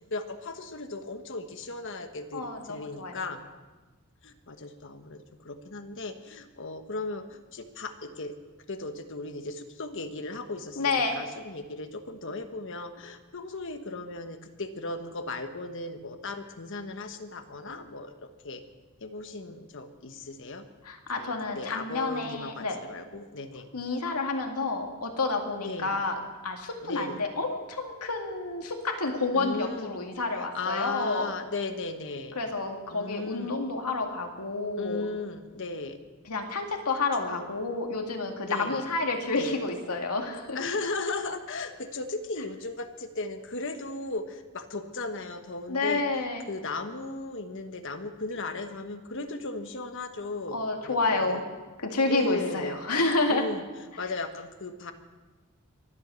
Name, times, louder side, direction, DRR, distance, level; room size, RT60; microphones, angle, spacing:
voice 1, 0.1-3.4 4.2-7.2 7.5-8.3 8.7-18.6 19.0-20.6 21.2-23.7 25.6-25.9 26.8-27.2 29.3-29.9 30.5-32.4 32.9-33.6 34.8-36.0 37.2-37.5 38.4-38.8 39.4-39.6 40.5-46.0 46.5-51.4 52.1-52.8 53.3-53.6 54.0-54.9, left 3 dB, 60° left, 8 dB, 1.2 m, -36 dB
voice 2, 2.3-3.2 10.8-11.2 20.8-22.8 23.7-31.3 32.4-35.1 36.2-40.6 45.7-46.4 50.5-51.4 51.8-53.5, left 3 dB, 90° left, 3 dB, 2.2 m, -29 dB
23.5 x 8.1 x 7.0 m, 1.2 s
head